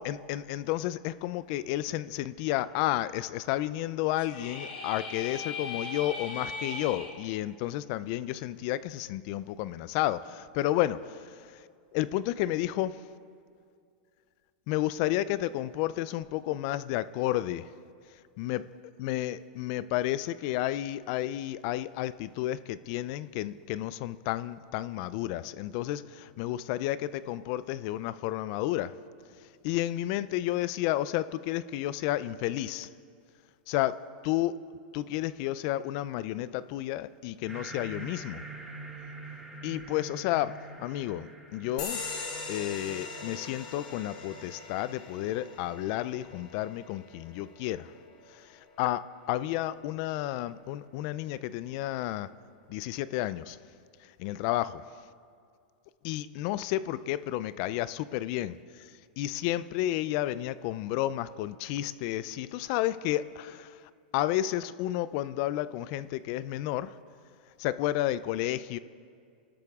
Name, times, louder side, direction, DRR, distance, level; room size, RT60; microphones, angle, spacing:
voice 1, 0.0-11.7 11.9-13.0 14.7-17.7 18.4-18.7 19.0-28.9 29.4-32.9 33.7-34.0 34.2-34.5 34.9-38.4 39.6-42.0 42.5-47.9 48.3-49.0 49.3-52.3 52.7-53.6 54.0-54.8 56.0-66.9 67.6-68.8, left 14 dB, 45° left, 16 dB, 0.4 m, -31 dB
sound 1, 4.2-7.1, left 3 dB, 90° left, 4.5 m, -38 dB
sound 2, 37.5-46.4, right 2 dB, 5° right, 1.9 m, -46 dB
sound 3, 41.8-48.8, left 4 dB, 60° left, 5.0 m, -41 dB
27.0 x 12.5 x 3.6 m, 2.3 s
supercardioid pair, 150°, 5 cm